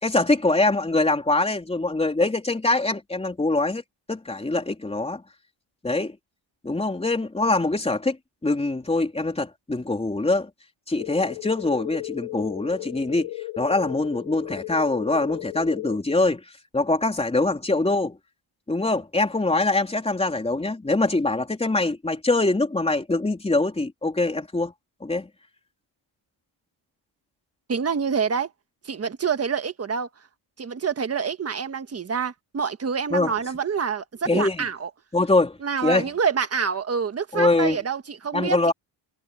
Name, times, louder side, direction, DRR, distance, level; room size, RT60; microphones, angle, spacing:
voice 1, 0.0-3.8 4.1-5.2 5.8-6.2 6.6-8.2 8.4-10.5 10.9-13.3 13.6-16.4 16.7-18.2 18.7-24.7 25.0-25.3 33.1-33.3 34.3-34.7 35.1-36.1 37.3-37.8 38.3-38.7, left 2 dB, 10° left, 3.6 m, -23 dB
sound 1, 11.0-16.0, left 19 dB, 75° left, 2.6 m, -35 dB
voice 2, 27.7-28.5 28.8-30.1 30.6-34.9 35.6-38.6, right 6 dB, 30° right, 1.5 m, -27 dB
cardioid pair, 155°, 48 cm